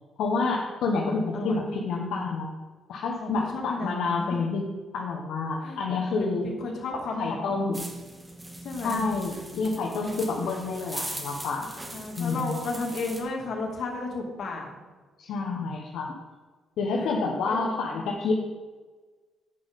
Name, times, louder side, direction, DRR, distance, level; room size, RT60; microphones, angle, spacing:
voice 1, 0.2-2.5 2.9-4.7 4.9-6.5 7.2-7.8 8.8-11.7 12.2-12.6 15.2-16.1 16.8-18.3, left 3 dB, 80° left, -1 dB, 1.2 m, -28 dB
voice 2, 3.2-4.4 5.6-5.8 6.2-7.7 8.6-9.1 11.9-14.7 17.0-17.2 17.5-17.7 17.9-18.0, left 3 dB, 60° left, 0 dB, 2.3 m, -33 dB
sound 1, 7.7-13.2, right 1 dB, 15° right, 2.0 m, -40 dB
9.6 x 5.4 x 5.4 m, 1.3 s
cardioid pair, 90°, 0 cm